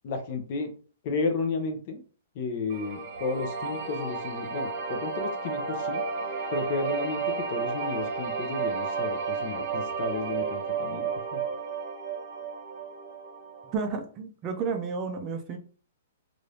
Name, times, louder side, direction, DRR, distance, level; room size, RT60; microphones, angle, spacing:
voice 1, 0.0-0.7 1.0-2.0 2.3-6.0 6.5-11.4, left 4 dB, 45° left, 0.7 m, -33 dB
sound 1, 2.7-13.8, right 5 dB, 45° right, 0.9 m, -32 dB
voice 2, 13.7-15.6, right 5 dB, 25° right, 0.5 m, -31 dB
2.7 x 2.5 x 3.3 m
hypercardioid pair, 155°, 0 cm